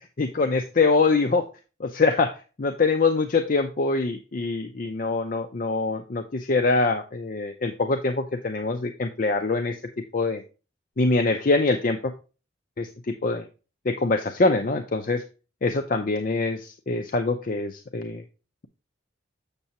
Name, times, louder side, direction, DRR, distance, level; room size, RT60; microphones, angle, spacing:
voice 1, 0.2-1.4 1.8-2.3 2.6-9.8 10.1-10.4 11.0-12.1 12.8-13.4 13.9-15.2 15.6-18.2, left 3 dB, 45° left, 6 dB, 0.5 m, -24 dB
7.2 x 6.8 x 2.9 m, 0.34 s
head